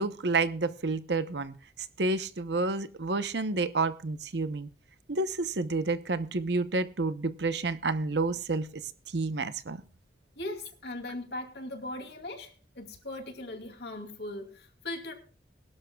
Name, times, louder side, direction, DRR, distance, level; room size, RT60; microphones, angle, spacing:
voice 1, 0.0-4.7 5.1-8.8 9.1-9.8, right 3 dB, 70° right, 0.9 m, -30 dB
voice 2, 10.4-15.1, left 2 dB, 65° left, 2.7 m, -39 dB
22.0 x 12.0 x 2.3 m
head